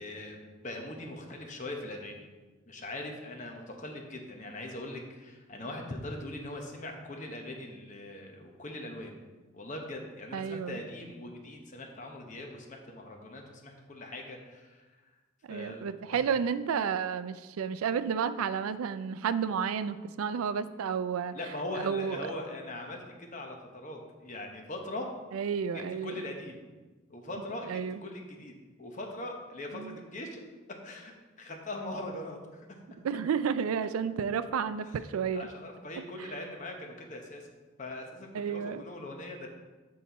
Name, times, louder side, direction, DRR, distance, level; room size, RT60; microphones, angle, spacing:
voice 1, 0.0-2.3 2.7-9.2 9.5-14.9 15.5-16.2 21.3-25.1 25.7-26.6 27.1-30.4 30.8-32.7 35.3-37.5 37.8-39.5, left 1 dB, 35° left, 2 dB, 0.9 m, -41 dB
voice 2, 10.3-10.8 15.5-21.3 21.8-22.3 25.3-26.1 27.7-28.0 29.7-30.0 33.0-35.5 36.2-36.3 38.3-38.8, right 7 dB, 85° right, 13 dB, 0.3 m, -31 dB
7.8 x 4.2 x 4.1 m, 1.3 s
head